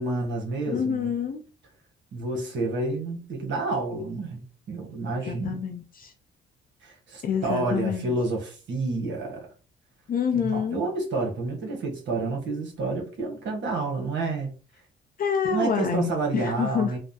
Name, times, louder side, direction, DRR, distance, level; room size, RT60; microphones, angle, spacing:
voice 1, 0.0-1.1 2.1-5.6 6.8-9.5 10.4-14.5 15.4-17.0, right 3 dB, 65° right, 1.1 m, -29 dB
voice 2, 0.7-1.4 5.3-6.1 7.2-8.1 10.1-10.8 15.2-17.0, left 7 dB, 45° left, 0.5 m, -27 dB
3.3 x 2.0 x 2.7 m
cardioid pair, 90°, 20 cm